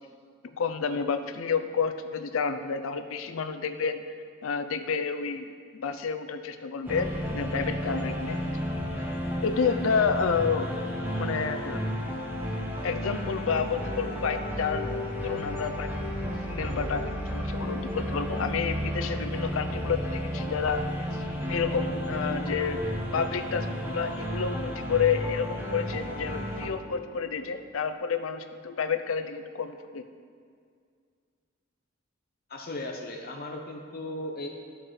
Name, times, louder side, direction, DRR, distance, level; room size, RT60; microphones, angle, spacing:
voice 1, 0.5-4.0 4.4-8.4 9.4-10.7 11.1-11.8 12.8-14.9 15.2-15.9 16.4-22.8 23.1-30.0, left 5 dB, 85° left, 9 dB, 0.5 m, -30 dB
sound 1, 6.8-26.7, equal, 10° right, 0.8 m, -32 dB
voice 2, 32.5-34.5, left 1 dB, 50° left, 1 dB, 0.7 m, -36 dB
13.5 x 4.5 x 3.2 m, 2.2 s
head